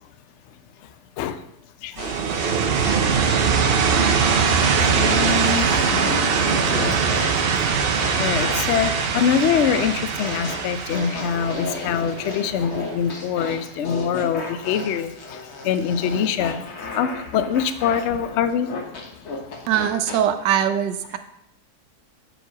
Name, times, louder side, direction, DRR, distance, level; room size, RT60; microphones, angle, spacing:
voice 1, 1.8-2.5 4.2-7.2 8.0-19.7, left 7 dB, 80° left, 11 dB, 0.6 m, -25 dB
sound 1, 2.0-3.6 4.0-20.2, left 3 dB, 45° left, 1.1 m, -34 dB
sound 2, 2.0-12.7, right 6 dB, 60° right, 0.6 m, -21 dB
voice 2, 19.7-21.2, right 9 dB, 85° right, 9 dB, 1.4 m, -21 dB
7.7 x 5.1 x 4.7 m, 0.76 s
omnidirectional pair, 1.9 m